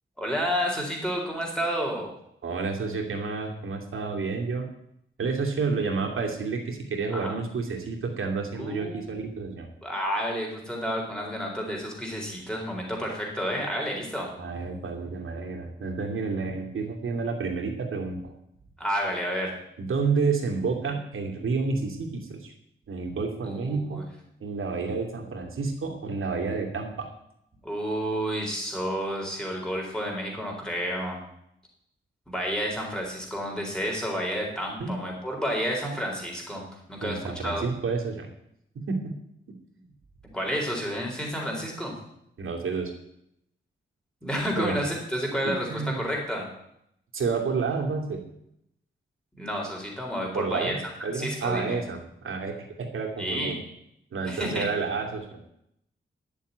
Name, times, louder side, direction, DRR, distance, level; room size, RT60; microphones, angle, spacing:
voice 1, 0.2-2.1 7.1-7.4 8.6-9.2 9.8-14.3 18.8-19.5 23.4-24.0 27.6-31.2 32.3-37.6 40.2-41.9 44.2-46.4 49.3-50.8 51.1-51.8 53.2-53.5 54.2-54.7, equal, 5° left, -1 dB, 4.3 m, -30 dB
voice 2, 2.4-4.7 5.2-9.7 14.4-18.3 19.8-22.5 22.9-24.0 24.4-27.1 34.8-34.9 37.0-38.3 38.7-39.1 42.4-42.9 44.5-44.8 45.4-46.0 47.1-48.2 50.3-53.6 54.1-55.4, right 4 dB, 80° right, 1 dB, 2.7 m, -30 dB
10.5 x 7.5 x 9.5 m, 0.76 s
wide cardioid pair, 130°, 21 cm